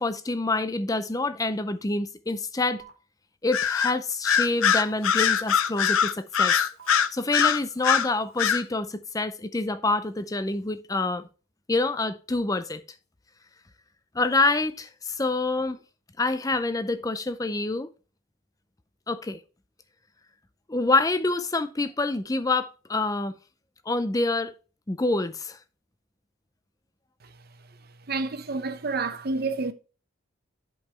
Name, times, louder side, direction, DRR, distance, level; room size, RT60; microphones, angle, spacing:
voice 1, 0.0-2.8 3.4-6.6 7.1-11.3 11.7-12.8 14.1-15.8 16.2-17.9 19.1-19.4 20.7-23.3 23.9-24.5 24.9-25.6, left 2 dB, 15° left, 0.5 m, -26 dB
sound 1, 2.8-2.9 3.8-3.9 4.8-4.9 5.8-5.9 6.8-6.9 7.8-8.3, right 8 dB, 65° right, 1.7 m, -47 dB
Bird vocalization bird call bird song, 3.5-3.9 4.2-8.1 8.4-8.6, left 8 dB, 80° left, 0.6 m, -22 dB
voice 2, 28.1-29.7, right 3 dB, 45° right, 0.7 m, -29 dB
7.8 x 5.4 x 4.4 m
head